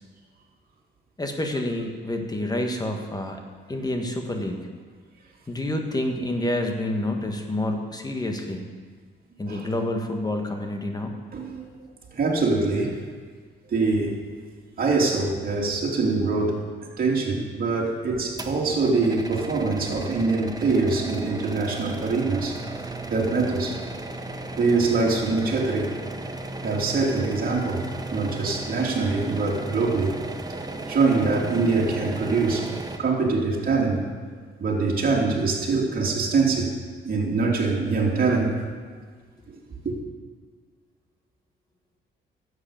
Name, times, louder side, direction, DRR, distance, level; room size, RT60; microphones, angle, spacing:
voice 1, 1.2-3.4 3.7-4.6 5.5-8.6 9.4-11.2, left 1 dB, 20° left, 3 dB, 1.6 m, -28 dB
voice 2, 11.3-11.7 12.1-13.0 13.7-14.2 14.8-16.7 17.0-22.6 23.1-23.7 24.6-25.9 26.6-27.8 28.1-30.2 30.9-32.7 33.0-34.0 34.6-36.7 37.0-38.6 39.8-39.9, right 3 dB, 45° right, -2 dB, 2.9 m, -23 dB
sound 1, 18.4-33.0, right 2 dB, 20° right, 1.1 m, -35 dB
11.5 x 8.1 x 7.1 m, 1.6 s
cardioid pair, 90°, 20 cm